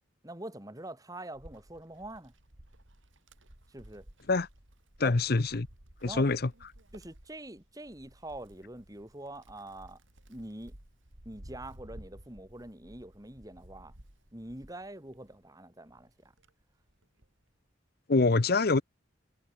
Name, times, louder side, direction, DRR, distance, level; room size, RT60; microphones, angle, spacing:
voice 1, 0.2-2.3 3.7-4.1 5.0-5.1 6.0-6.3 6.9-10.0 10.3-10.7 11.2-13.9 14.3-16.3, right 1 dB, 20° right, 2.5 m, -45 dB
Wind, 1.3-15.5 15.9-17.4, right 1 dB, 75° right, 3.9 m, -55 dB
voice 2, 5.0-5.7 6.0-6.5 18.1-18.8, left 3 dB, 50° left, 0.8 m, -25 dB
head